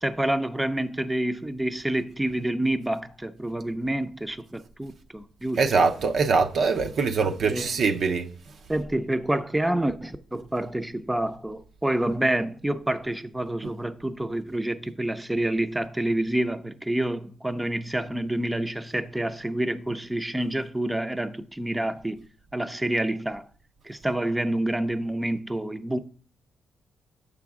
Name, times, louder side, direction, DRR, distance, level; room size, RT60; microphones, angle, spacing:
voice 1, 0.0-5.6 7.4-7.7 8.7-22.2 22.5-23.4 23.8-26.0, right 1 dB, 10° right, 0.5 m, -28 dB
voice 2, 5.6-8.3, right 4 dB, 65° right, 0.6 m, -23 dB
6.9 x 5.0 x 3.6 m
cardioid pair, 70°, 0 cm